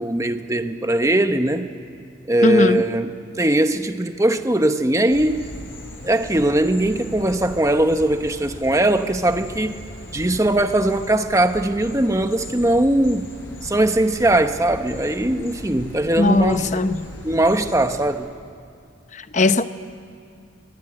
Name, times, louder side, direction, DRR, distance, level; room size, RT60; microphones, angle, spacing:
voice 1, 0.0-1.7 2.3-3.1 3.4-5.5 6.0-9.8 10.1-13.3 13.6-16.7 17.2-18.3, right 1 dB, 15° right, 8 dB, 1.0 m, -20 dB
voice 2, 2.4-2.8 16.2-17.1 19.1-19.7, left 2 dB, 35° left, 11 dB, 0.8 m, -19 dB
sound 1, 5.1-18.1, left 1 dB, 80° left, 5.7 m, -38 dB
23.5 x 23.0 x 9.9 m, 2.5 s
head